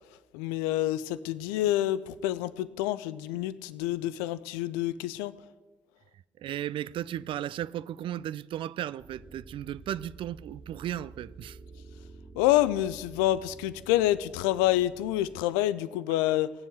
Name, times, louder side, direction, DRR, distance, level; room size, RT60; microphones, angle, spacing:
voice 1, 0.3-5.3 12.4-16.5, left 14 dB, 75° left, 0.5 m, -27 dB
voice 2, 6.4-11.6, right 11 dB, 55° right, 0.4 m, -35 dB
sound 1, 9.0-15.4, right 3 dB, 25° right, 2.2 m, -50 dB
17.5 x 7.2 x 7.7 m
figure-of-eight pair, 40°, 10 cm